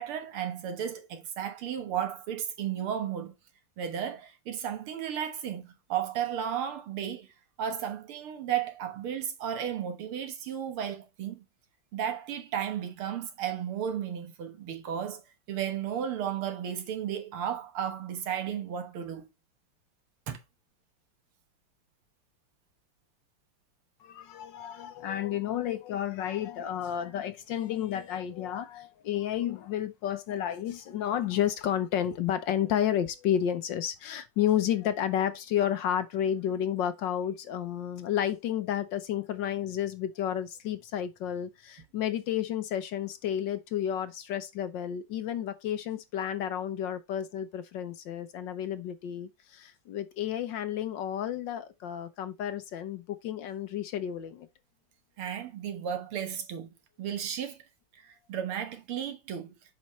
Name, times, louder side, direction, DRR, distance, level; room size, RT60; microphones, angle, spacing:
voice 1, 0.0-3.3 3.8-7.3 7.6-11.5 11.9-15.2 15.5-19.3 20.3-20.4 55.2-56.7 57.0-57.6 57.9-59.6, right 9 dB, 80° right, 2.1 m, -34 dB
voice 2, 24.0-54.5, left 10 dB, 65° left, 1.3 m, -31 dB
7.3 x 5.5 x 3.1 m
omnidirectional pair, 2.4 m